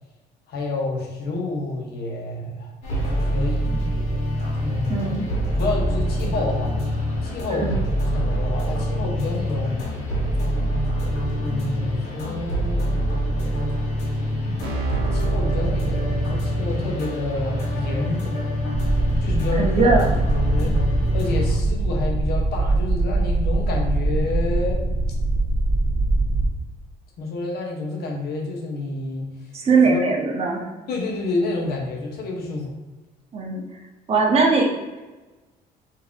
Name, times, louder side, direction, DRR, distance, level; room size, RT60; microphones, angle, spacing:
voice 1, 0.5-2.7 3.1-3.7 4.6-5.3 5.6-6.8 7.2-10.0 11.4-12.9 15.0-18.3 19.1-19.9 20.2-20.7 21.1-24.9 27.2-29.3 29.8-30.0 30.9-32.7, left 3 dB, 70° left, 0 dB, 0.8 m, -29 dB
sound 1, 2.8-21.5, equal, 85° left, 1.1 m, -25 dB
voice 2, 4.9-5.3 7.5-7.7 19.5-20.1 29.5-30.6 33.3-33.6 34.1-34.7, right 4 dB, 35° right, 0 dB, 0.7 m, -20 dB
Keyboard (musical), 14.6-24.9, right 4 dB, 75° right, 0.6 m, -34 dB
sound 2, 18.7-26.5, right 2 dB, ahead, 1.2 m, -22 dB
3.8 x 2.8 x 2.3 m, 1.2 s
cardioid pair, 110°, 17 cm